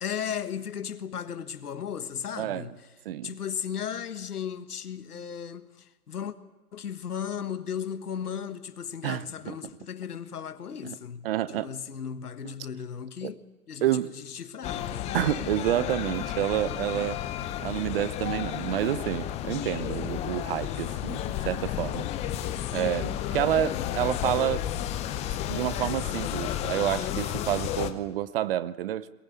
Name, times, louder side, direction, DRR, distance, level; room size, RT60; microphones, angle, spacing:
voice 1, 0.0-2.9 3.2-6.4 6.7-15.2 18.8-19.0, left 8 dB, 80° left, 1.6 m, -36 dB
voice 2, 2.4-2.7 3.1-3.3 9.0-9.5 10.8-11.0 11.2-11.7 12.4-12.5 13.2-13.3 13.8-14.1 15.1-17.2 17.6-21.2 21.4-22.1 22.7-24.6 25.5-29.1, right 13 dB, 40° right, 0.8 m, -29 dB
sound 1, 14.6-27.9, left 11 dB, 15° left, 0.7 m, -32 dB
22.0 x 18.5 x 8.4 m
hypercardioid pair, 130°, 45 cm